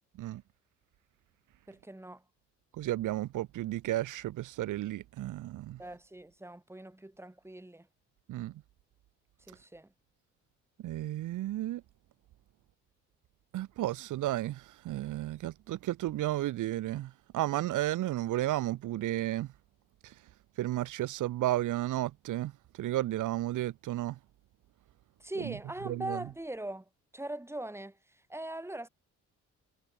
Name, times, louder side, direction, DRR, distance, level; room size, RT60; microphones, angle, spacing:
voice 1, 1.7-2.2 5.8-7.9 9.4-9.9 25.2-28.9, right 1 dB, 10° right, 6.9 m, -41 dB
voice 2, 2.8-5.8 8.3-8.5 10.8-11.8 13.5-19.5 20.6-22.5 22.8-24.2 25.4-25.5 25.8-26.2, right 15 dB, 85° right, 4.9 m, -33 dB
cardioid pair, 90°, 30 cm